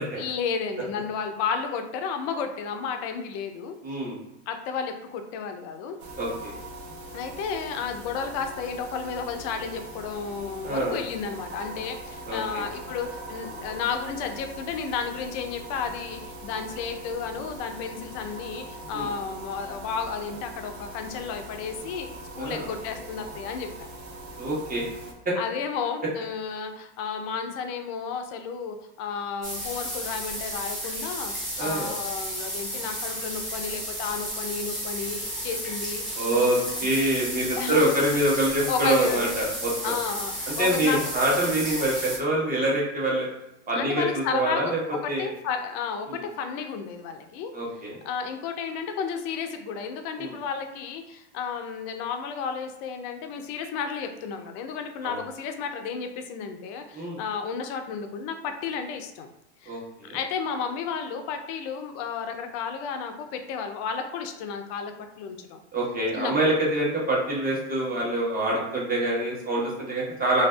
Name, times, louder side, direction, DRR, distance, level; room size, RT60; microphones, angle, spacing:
voice 1, 0.2-3.8 4.5-6.0 7.1-22.1 22.4-23.9 25.4-31.3 31.6-36.5 37.5-37.9 38.7-39.2 39.8-41.2 43.8-47.5 48.0-59.3 59.6-65.6 66.1-66.3, left 6 dB, 50° left, 6 dB, 0.5 m, -32 dB
voice 2, 3.8-4.2 6.2-6.5 10.6-11.0 12.3-12.6 18.9-19.1 22.4-22.7 24.4-24.8 25.2-25.3 31.6-31.9 36.2-39.9 40.6-43.3 43.7-44.8 45.1-45.3 46.1-46.2 47.5-48.0 50.2-50.3 55.0-55.2 56.9-57.2 59.7-60.2 65.7-70.5, right 1 dB, 25° right, -4 dB, 1.0 m, -25 dB
sound 1, 6.0-25.1, right 1 dB, 65° right, 0.7 m, -41 dB
sound 2, 29.4-42.2, equal, ahead, 0.8 m, -33 dB
2.5 x 2.3 x 2.3 m, 0.90 s
hypercardioid pair, 100°, 35 cm